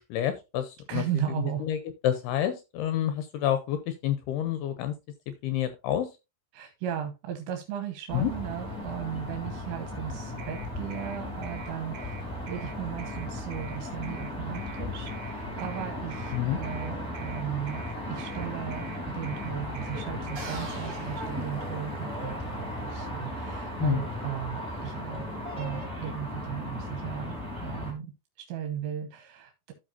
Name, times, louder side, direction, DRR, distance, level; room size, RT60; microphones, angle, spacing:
voice 1, 0.0-1.0 1.6-1.8 2.0-4.9 5.4-6.1 8.1-8.3 16.3-16.6 23.8-24.0, left 11 dB, 80° left, 10 dB, 2.4 m, -28 dB
voice 2, 0.9-1.7 6.5-27.3 27.6-28.1 28.4-29.7, right 10 dB, 80° right, 5 dB, 3.2 m, -36 dB
sound 1, 8.1-27.9, left 1 dB, ahead, 1.6 m, -36 dB
sound 2, 10.4-20.6, right 7 dB, 65° right, 2.1 m, -47 dB
sound 3, 20.4-22.3, right 3 dB, 40° right, 4.0 m, -43 dB
13.5 x 5.0 x 2.7 m, 0.25 s
omnidirectional pair, 5.2 m